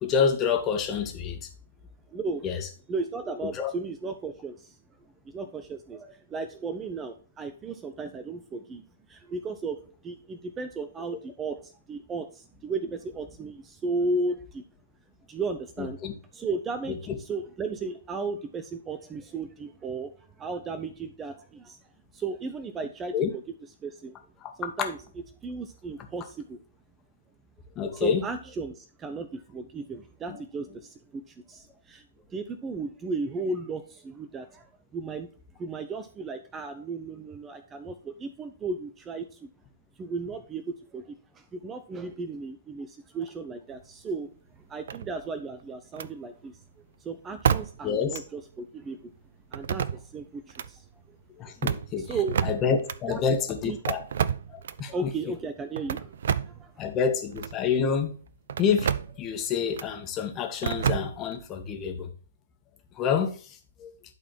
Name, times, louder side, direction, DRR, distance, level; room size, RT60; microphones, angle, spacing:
voice 1, 0.0-1.4 2.4-2.7 3.5-3.7 16.0-16.1 23.1-23.3 24.4-24.5 24.8-24.9 27.7-28.2 30.3-30.4 47.8-48.2 51.4-52.1 52.4-54.0 54.5-55.1 56.8-58.1 58.6-58.9 59.2-62.1 63.0-63.3 63.8-63.9, left 6 dB, 25° left, 1.7 m, -27 dB
voice 2, 2.1-2.4 2.9-4.8 5.2-8.8 9.1-9.8 10.0-14.6 15.3-16.0 16.3-20.1 20.4-21.8 22.1-23.4 23.8-24.2 24.6-25.0 25.4-26.6 27.9-32.0 32.3-35.3 35.6-39.5 40.0-44.3 44.7-46.6 47.0-49.1 49.5-50.8 51.9-52.4 53.1-53.2 53.6-53.8 54.9-56.9, right 3 dB, 15° right, 0.7 m, -35 dB
sound 1, 44.9-45.4 45.9-46.1 47.4-47.9 48.1-48.2 49.5-50.2 50.5-50.7 51.5-53.0 53.8-54.9 55.8-56.6 57.3-57.6 58.5-59.2 59.7-59.9 60.6-61.4, right 8 dB, 60° right, 0.5 m, -29 dB
11.5 x 4.2 x 4.4 m
figure-of-eight pair, 120°, 0 cm